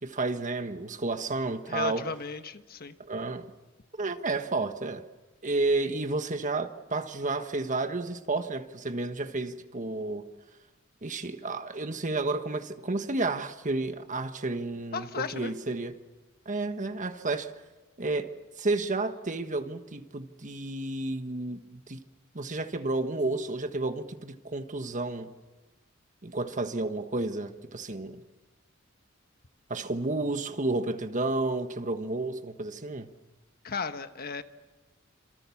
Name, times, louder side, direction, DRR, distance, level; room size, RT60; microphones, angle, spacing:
voice 1, 0.0-2.1 3.0-3.5 4.0-5.0 5.4-10.2 11.0-16.0 16.4-17.5 18.0-22.0 22.3-25.3 26.2-28.2 29.7-33.1, right 2 dB, 40° right, 1.4 m, -31 dB
voice 2, 1.7-2.9 14.9-15.5 33.6-34.4, left 4 dB, 50° left, 1.3 m, -35 dB
27.5 x 27.5 x 7.2 m
head